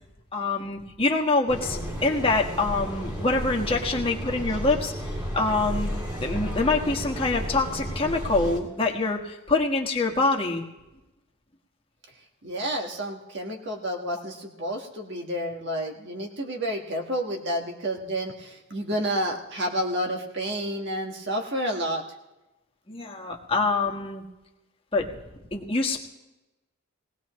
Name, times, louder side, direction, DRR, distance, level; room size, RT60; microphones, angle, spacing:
voice 1, 0.3-4.9 5.3-5.9 6.2-10.6 22.9-24.2 24.9-25.1 25.5-26.0, left 3 dB, 25° left, -1 dB, 1.5 m, -25 dB
sound 1, 1.5-8.6, equal, 20° right, 2.6 m, -32 dB
voice 2, 12.4-22.0, equal, 55° right, 2 dB, 1.5 m, -30 dB
20.0 x 18.0 x 3.1 m, 1.0 s
head